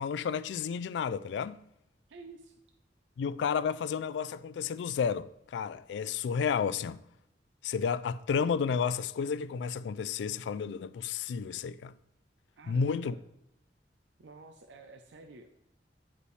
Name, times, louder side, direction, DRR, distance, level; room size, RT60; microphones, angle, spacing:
voice 1, 0.0-1.6 3.2-7.0 7.6-11.9 12.7-13.1, left 6 dB, 80° left, 0.3 m, -31 dB
voice 2, 2.1-2.5 12.6-13.2 14.2-15.5, right 3 dB, 85° right, 0.5 m, -50 dB
9.8 x 5.3 x 3.2 m
head